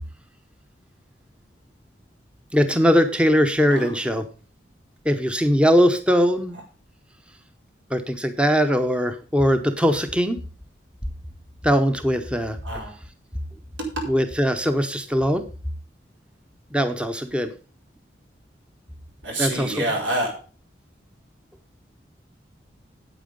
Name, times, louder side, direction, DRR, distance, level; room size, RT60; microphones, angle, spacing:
voice 1, 2.5-4.2 5.0-6.6 7.9-10.4 11.6-12.6 14.1-15.4 16.7-17.5 19.4-19.8, equal, 5° right, 8 dB, 0.7 m, -20 dB
voice 2, 19.2-20.3, right 1 dB, 85° right, 0 dB, 4.5 m, -26 dB
9.1 x 8.5 x 5.1 m, 0.37 s
head